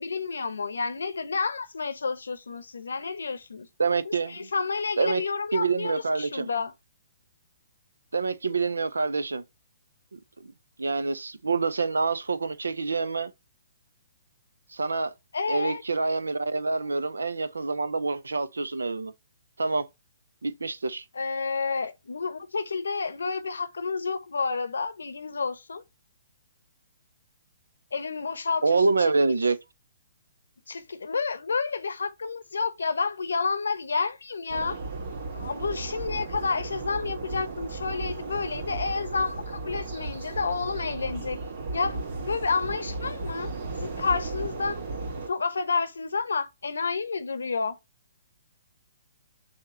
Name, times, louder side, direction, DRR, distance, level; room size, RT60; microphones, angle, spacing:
voice 1, 0.0-3.7 4.1-6.7 15.3-15.8 21.1-25.8 27.9-29.1 30.7-34.8 35.3-41.4 41.7-43.5 43.8-44.8 45.3-47.7, left 4 dB, 80° left, 0.8 m, -30 dB
voice 2, 3.8-4.5 5.0-5.2 5.5-6.5 8.1-9.4 10.1-10.5 10.8-13.3 14.7-15.1 15.5-19.1 19.6-19.8 20.4-21.0 28.6-29.6, right 4 dB, 85° right, 0.5 m, -26 dB
sound 1, 34.5-45.3, right 3 dB, 60° right, 2.0 m, -35 dB
6.4 x 2.9 x 2.7 m
hypercardioid pair, 135°, 0 cm